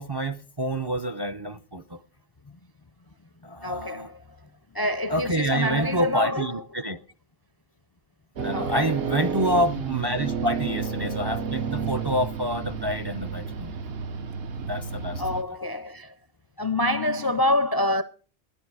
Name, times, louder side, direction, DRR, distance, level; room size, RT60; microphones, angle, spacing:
voice 1, 0.0-2.0 3.4-4.1 5.1-7.0 8.4-13.7 14.6-15.4, equal, 35° right, 0.4 m, -28 dB
voice 2, 3.6-4.2 4.7-6.6 8.5-8.9 15.2-16.1 16.6-18.0, left 1 dB, 35° left, 0.4 m, -26 dB
sound 1, 8.4-15.4, right 5 dB, 70° right, 1.0 m, -31 dB
11.5 x 11.0 x 4.6 m
omnidirectional pair, 1.1 m